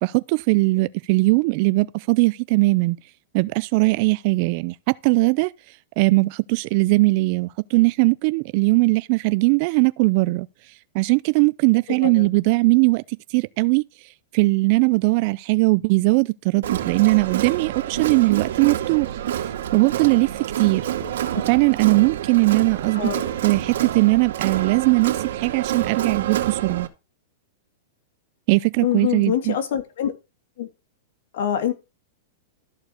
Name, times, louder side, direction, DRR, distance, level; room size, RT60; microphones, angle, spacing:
voice 1, 0.0-3.0 3.3-5.5 6.0-10.5 10.9-13.0 13.3-13.8 14.3-19.1 19.7-20.3 20.6-20.8 21.5-23.1 23.4-26.9 28.5-29.6, right 24 dB, 50° right, 0.5 m, -19 dB
Crowd, 16.6-26.9, right 11 dB, 75° right, 2.3 m, -28 dB
voice 2, 22.9-23.3 28.8-30.1 30.6-30.7 31.3-31.7, left 10 dB, 65° left, 2.5 m, -25 dB
13.5 x 4.6 x 6.4 m
hypercardioid pair, 130°, 0 cm